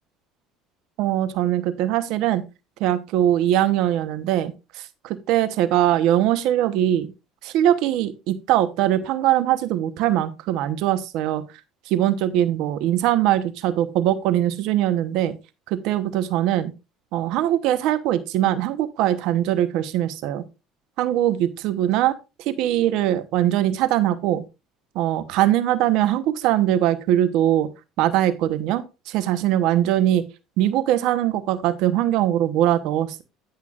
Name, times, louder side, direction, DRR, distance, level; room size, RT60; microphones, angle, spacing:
voice 1, 1.0-2.4 2.8-7.1 7.4-11.4 11.9-15.3 15.7-16.7 17.1-20.4 21.0-24.4 24.9-27.7 28.0-30.2 30.6-33.2, right 12 dB, 70° right, 12 dB, 1.0 m, -21 dB
14.5 x 5.8 x 2.5 m, 0.27 s
supercardioid pair, 85°, 0 cm